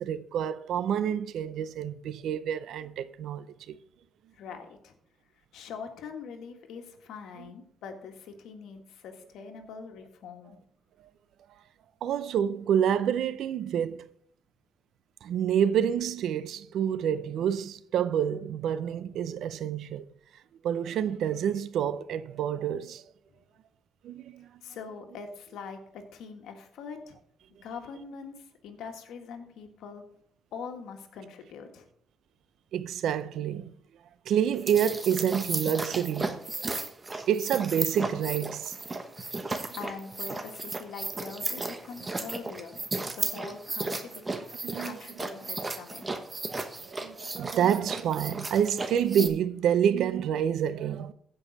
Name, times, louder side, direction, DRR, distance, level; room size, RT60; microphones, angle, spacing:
voice 1, 0.0-3.8 12.0-14.1 15.2-20.1 20.6-23.0 24.0-24.5 32.7-33.7 34.3-36.4 37.3-38.7 44.6-45.0 46.9-51.1, right 9 dB, 75° right, 0.6 m, -28 dB
voice 2, 4.3-4.9 5.5-10.6 24.6-27.2 27.6-28.3 28.6-30.0 30.5-31.9 39.7-42.8 43.1-44.1 44.8-46.2, left 5 dB, 80° left, 1.7 m, -43 dB
sound 1, 34.6-49.3, right 2 dB, 25° right, 1.2 m, -35 dB
15.5 x 5.5 x 4.1 m
cardioid pair, 90°, 0 cm